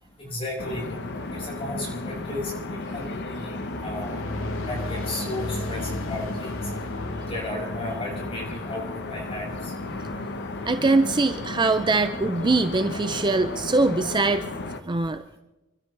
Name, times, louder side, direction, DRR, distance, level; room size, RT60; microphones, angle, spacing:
voice 1, 0.2-0.9 1.3-2.5 2.9-3.5 3.8-4.2 4.7-6.6 7.3-9.7, left 2 dB, 30° left, -2 dB, 6.0 m, -34 dB
sound 1, 0.6-14.8, left 2 dB, 55° left, 1.1 m, -34 dB
sound 2, 3.3-9.8, left 1 dB, 70° left, 1.5 m, -36 dB
voice 2, 10.7-14.5 14.8-15.2, right 3 dB, 20° right, 9 dB, 0.5 m, -22 dB
28.5 x 13.0 x 3.4 m, 1.0 s
head